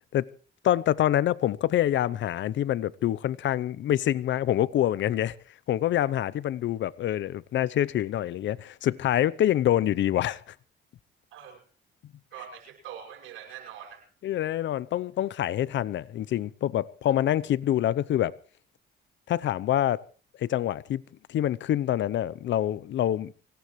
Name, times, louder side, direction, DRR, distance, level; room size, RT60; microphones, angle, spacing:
voice 1, 0.6-5.4 5.7-10.5 14.2-18.4 19.3-20.0 20.4-21.0 21.3-23.3, left 12 dB, 70° left, 0.7 m, -26 dB
voice 2, 11.3-11.6 12.3-14.1 17.1-17.2, right 9 dB, 90° right, 6.0 m, -44 dB
25.0 x 18.0 x 3.2 m
cardioid pair, 90°, 20 cm